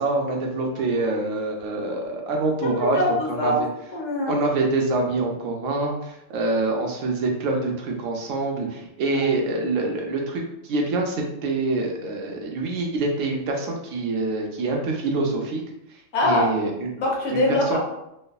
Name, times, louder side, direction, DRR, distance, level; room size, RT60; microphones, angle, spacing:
voice 1, 0.0-3.5 4.3-15.6 16.2-16.9 17.3-17.8, right 2 dB, 85° right, 1 dB, 1.0 m, -25 dB
voice 2, 2.6-3.6 3.9-4.4 9.0-9.3 16.1-16.5 17.0-17.8, left 1 dB, 75° left, -2 dB, 1.1 m, -23 dB
3.2 x 2.0 x 2.2 m, 0.83 s
omnidirectional pair, 1.3 m